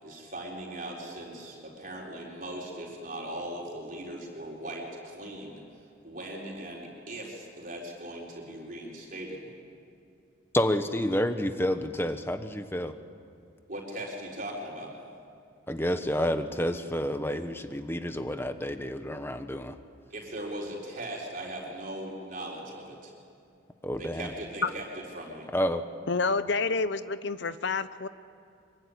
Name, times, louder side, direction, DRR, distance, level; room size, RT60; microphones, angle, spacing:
voice 1, 0.0-5.6 6.0-9.5 13.7-14.9 20.1-23.1 24.0-24.8 25.1-25.5, right 1 dB, 40° right, -2 dB, 4.3 m, -39 dB
voice 2, 10.5-12.9 15.7-19.8 23.8-24.3 25.5-25.8, equal, 10° left, 9 dB, 1.2 m, -29 dB
voice 3, 26.1-28.1, left 4 dB, 60° left, 14 dB, 0.7 m, -28 dB
25.0 x 24.0 x 9.9 m, 2.5 s
head